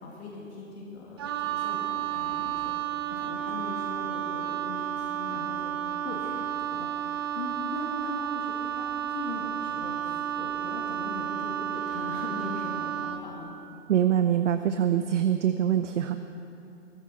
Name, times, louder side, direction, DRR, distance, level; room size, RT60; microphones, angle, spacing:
voice 1, 0.0-5.7 6.0-13.5, left 3 dB, 55° left, -3 dB, 2.7 m, -40 dB
Wind instrument woodwind instrument, 1.2-13.3, right 10 dB, 20° right, 0.4 m, -32 dB
voice 2, 13.9-16.2, right 10 dB, 65° right, 8 dB, 0.8 m, -24 dB
16.5 x 15.0 x 4.5 m, 2.8 s
hypercardioid pair, 130°, 38 cm